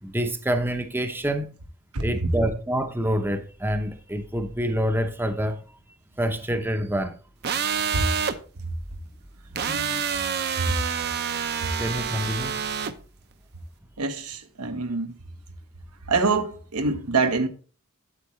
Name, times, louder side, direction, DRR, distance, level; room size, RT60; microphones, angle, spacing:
voice 1, 0.0-1.6 2.0-5.6 6.2-7.2 11.8-12.6, equal, 10° right, 0.7 m, -27 dB
sound 1, 7.4-8.4 9.6-12.9, right 7 dB, 50° right, 0.7 m, -27 dB
voice 2, 9.6-10.0 10.6-10.7 14.0-15.1 16.1-17.5, right 4 dB, 85° right, 1.1 m, -25 dB
8.5 x 8.2 x 3.1 m
head